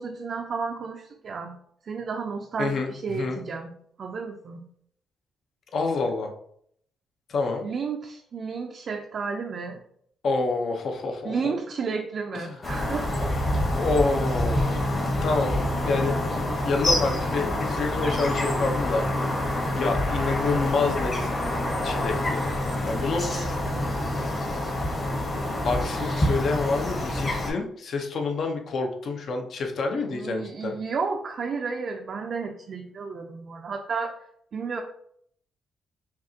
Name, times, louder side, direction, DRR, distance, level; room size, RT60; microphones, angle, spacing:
voice 1, 0.0-1.5 1.8-3.7 4.0-4.6 7.6-9.8 11.2-13.3 23.3-23.9 30.1-34.2 34.5-34.8, right 5 dB, 55° right, 2 dB, 0.5 m, -32 dB
voice 2, 2.6-3.4 5.7-6.3 7.3-7.6 10.2-11.6 12.3-12.5 13.7-14.9 15.2-16.2 16.6-19.1 19.7-21.3 21.8-22.5 22.8-23.2 25.6-30.8, left 3 dB, 60° left, 3 dB, 0.8 m, -28 dB
sound 1, 12.6-27.5, left 1 dB, 35° left, 1.3 m, -27 dB
5.7 x 2.5 x 2.8 m, 0.66 s
cardioid pair, 90°, 0 cm